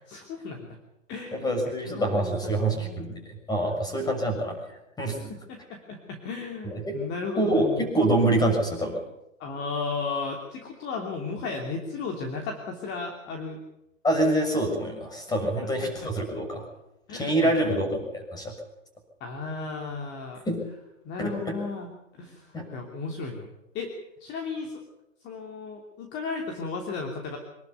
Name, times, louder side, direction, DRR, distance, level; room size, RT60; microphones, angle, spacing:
voice 1, 0.1-0.8 1.1-1.5 1.8-2.3 2.7-3.1 3.7-4.2 5.3-7.9 9.4-13.6 15.4-15.5 17.1-17.6 19.2-20.4 21.0-23.9 24.2-24.8 25.2-27.4, left 4 dB, 25° left, 2 dB, 3.1 m, -35 dB
voice 2, 1.3-3.1 3.5-4.6 5.0-5.3 6.6-6.9 7.3-9.0 14.0-16.6 17.1-18.5 20.5-20.6 21.2-21.5 22.5-22.7, right 1 dB, 10° left, 3 dB, 6.5 m, -26 dB
25.5 x 12.0 x 9.6 m, 0.89 s
hypercardioid pair, 125°, 38 cm